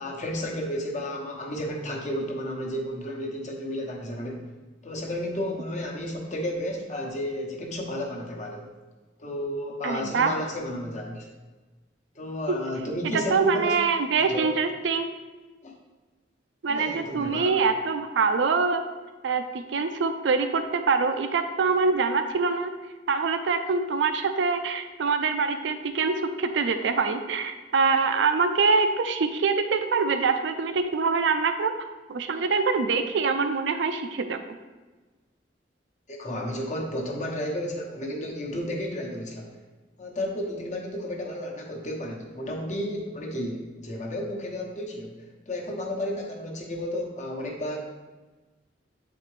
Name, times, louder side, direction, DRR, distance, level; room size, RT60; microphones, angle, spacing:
voice 1, 0.0-4.4 4.8-8.7 9.2-11.3 12.2-13.7 14.1-14.5 15.6-15.7 16.7-17.6 36.1-39.6 40.0-47.8, left 1 dB, 40° left, 0 dB, 1.0 m, -32 dB
voice 2, 9.8-10.3 13.1-15.0 16.6-18.8 19.2-19.4 19.7-22.7 23.1-31.7 32.1-34.4, right 4 dB, 80° right, 8 dB, 0.4 m, -24 dB
7.6 x 4.1 x 3.2 m, 1.2 s
head